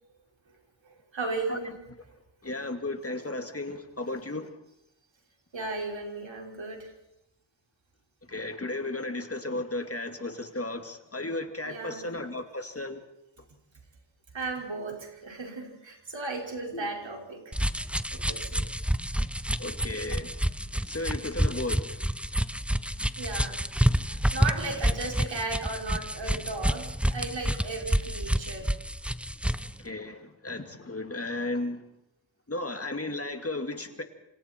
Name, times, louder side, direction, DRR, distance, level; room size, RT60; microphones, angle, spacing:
voice 1, 0.8-1.7 4.1-4.2 5.5-6.9 11.6-12.1 14.3-17.4 18.1-18.7 23.2-23.6 24.0-28.7, right 3 dB, 80° right, 1 dB, 5.2 m, -35 dB
voice 2, 2.4-4.5 8.3-13.0 16.7-16.9 19.6-20.3 20.9-21.9 29.8-31.8 32.5-34.0, left 2 dB, 30° left, 6 dB, 2.3 m, -34 dB
sound 1, 17.5-29.7, equal, 5° right, 0.7 m, -28 dB
27.5 x 27.0 x 4.5 m, 0.88 s
wide cardioid pair, 80°, 45 cm